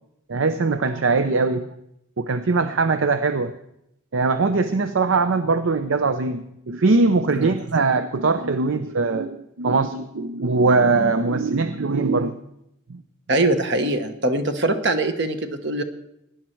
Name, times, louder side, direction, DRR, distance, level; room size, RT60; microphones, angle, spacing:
voice 1, 0.3-1.7 2.2-3.5 4.1-12.4 12.9-13.0, right 3 dB, 75° right, 11 dB, 0.6 m, -21 dB
voice 2, 13.3-15.8, right 2 dB, 60° right, 8 dB, 1.2 m, -22 dB
17.5 x 10.5 x 4.5 m, 0.81 s
head